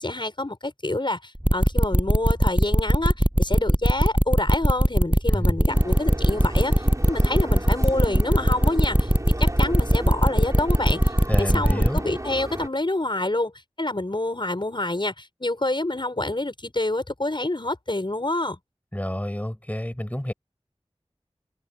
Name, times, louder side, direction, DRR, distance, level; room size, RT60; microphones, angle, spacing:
voice 1, 0.0-9.1 9.4-11.1 11.4-13.5 13.8-18.6, left 2 dB, 45° left, 6.3 m, -27 dB
sound 1, 1.4-12.0, equal, 10° right, 6.6 m, -19 dB
sound 2, 5.7-12.7, right 1 dB, 30° right, 4.3 m, -34 dB
voice 2, 11.3-12.0 18.9-20.3, equal, 15° left, 7.1 m, -29 dB
wide cardioid pair, 45°, 11 cm